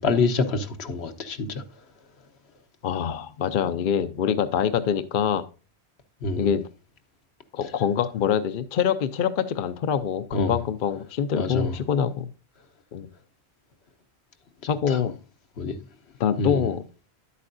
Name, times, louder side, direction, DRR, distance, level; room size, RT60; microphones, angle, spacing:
voice 1, 0.0-1.6 6.2-6.5 10.3-10.5 11.3-11.7 14.9-15.0 15.6-15.7 16.4-16.7, left 3 dB, 75° left, 1.3 m, -26 dB
voice 2, 2.8-5.4 6.4-6.6 7.5-12.3 12.9-13.1 14.7-15.2 16.2-16.8, left 8 dB, 60° left, 0.7 m, -25 dB
10.5 x 8.3 x 2.5 m
omnidirectional pair, 1.1 m